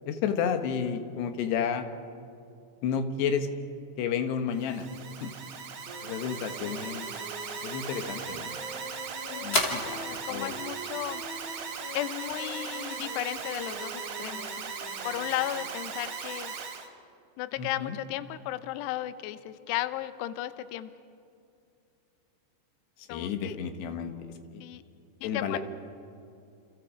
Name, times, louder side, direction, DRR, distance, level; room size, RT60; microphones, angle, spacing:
voice 1, 0.1-1.9 2.8-3.5 4.0-5.3 6.0-7.1 7.6-8.5 9.4-10.5 17.6-18.0 23.0-24.6 25.2-25.6, left 7 dB, 65° left, 7 dB, 3.1 m, -31 dB
Alarm, 4.5-16.9, right 6 dB, 70° right, 4.8 m, -38 dB
sound 1, 5.8-16.2, right 1 dB, 30° right, 5.3 m, -45 dB
sound 2, 8.6-15.2, left 2 dB, 30° left, 1.9 m, -39 dB
voice 2, 10.0-11.2 11.9-14.7 15.0-16.5 17.4-20.9 23.1-23.6 24.6-24.8 25.2-25.6, left 14 dB, 90° left, 12 dB, 2.4 m, -35 dB
29.5 x 28.5 x 5.1 m, 2.5 s
omnidirectional pair, 5.8 m